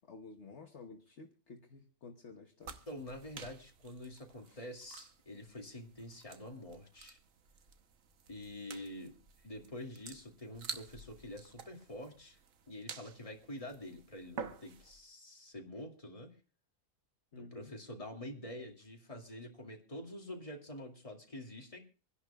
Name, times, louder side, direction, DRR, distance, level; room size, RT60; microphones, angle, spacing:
voice 1, 0.1-2.8 4.5-4.6 17.3-17.7, left 4 dB, 60° left, 1.3 m, -52 dB
sound 1, 2.6-15.0, right 6 dB, 70° right, 1.4 m, -50 dB
voice 2, 2.9-7.2 8.3-9.1 9.4-12.4 12.7-16.3 17.4-21.8, left 1 dB, 25° left, 2.5 m, -47 dB
26.0 x 11.0 x 2.3 m
omnidirectional pair, 1.4 m